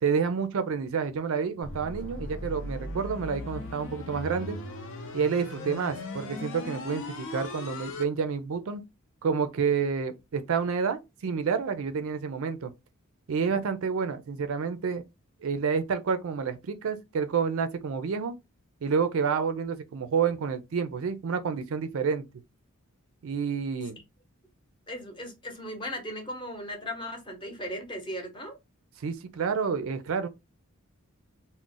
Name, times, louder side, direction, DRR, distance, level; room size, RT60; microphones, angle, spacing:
voice 1, 0.0-4.6 5.1-8.8 9.2-12.7 13.3-15.0 15.4-18.3 18.8-22.2 23.2-24.0 29.0-30.3, right 6 dB, 65° right, 0.4 m, -29 dB
sound 1, 1.6-8.0, left 2 dB, 60° left, 0.6 m, -38 dB
voice 2, 24.9-28.6, equal, 20° left, 0.8 m, -37 dB
2.4 x 2.1 x 3.7 m
head